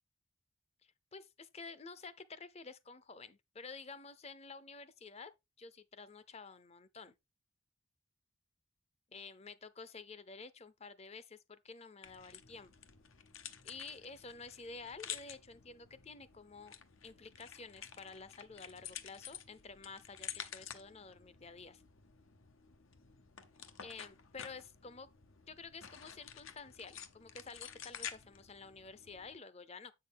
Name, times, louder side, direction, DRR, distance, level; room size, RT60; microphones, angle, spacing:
voice 1, 0.8-5.3 5.6-7.1 9.1-12.7 13.6-16.7 17.0-21.8 23.8-25.1 25.5-29.9, left 4 dB, 30° left, 0.7 m, -51 dB
sound 1, 12.0-29.4, left 9 dB, 75° left, 0.9 m, -51 dB
8.1 x 6.3 x 3.5 m
head